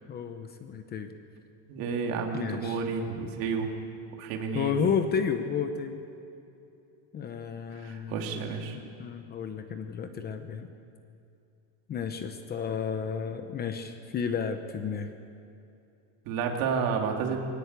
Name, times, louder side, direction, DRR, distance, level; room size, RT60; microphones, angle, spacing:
voice 1, 0.1-1.1 2.3-2.8 4.5-6.0 7.1-10.7 11.9-15.1, left 6 dB, 25° left, 8 dB, 0.8 m, -32 dB
voice 2, 1.7-3.7 4.2-4.8 7.8-8.8 16.3-17.4, right 5 dB, 50° right, 2 dB, 3.0 m, -30 dB
22.0 x 18.5 x 8.2 m, 2.7 s
cardioid pair, 175°, 41 cm